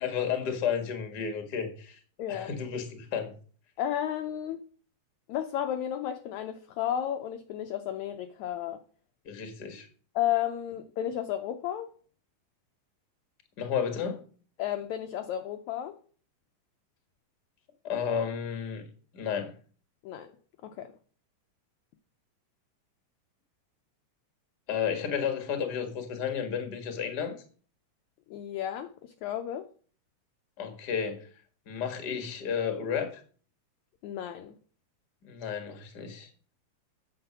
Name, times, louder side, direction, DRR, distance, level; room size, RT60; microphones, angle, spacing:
voice 1, 0.0-2.0 2.3-3.3 9.2-9.9 13.6-14.2 17.8-18.8 19.1-19.5 24.7-27.3 30.6-31.3 31.7-33.2 35.2-36.3, left 7 dB, 40° left, 6 dB, 1.5 m, -32 dB
voice 2, 2.2-2.5 3.8-4.6 5.3-8.8 10.1-11.9 14.6-15.9 20.0-20.3 20.6-20.9 28.3-29.7 34.0-34.5, left 11 dB, 75° left, 7 dB, 1.7 m, -33 dB
9.1 x 6.7 x 5.9 m, 0.42 s
omnidirectional pair, 3.9 m